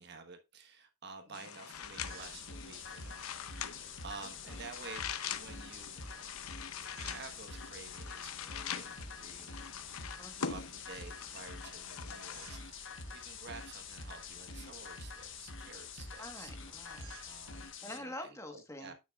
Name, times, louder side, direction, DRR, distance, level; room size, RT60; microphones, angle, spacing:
voice 1, 0.0-3.3 3.5-5.1 5.4-6.0 7.0-9.5 9.8-10.1 10.4-16.5 17.2-18.1 18.5-18.9, right 4 dB, 50° right, 1.3 m, -51 dB
sound 1, 1.3-12.6, left 8 dB, 85° left, 0.7 m, -44 dB
sound 2, 1.7-17.7, right 3 dB, 70° right, 2.5 m, -58 dB
sound 3, 2.0-18.0, left 4 dB, 60° left, 1.3 m, -47 dB
voice 2, 10.2-10.6 16.2-17.2 17.8-18.9, left 1 dB, 15° left, 1.3 m, -46 dB
9.9 x 6.5 x 2.4 m
head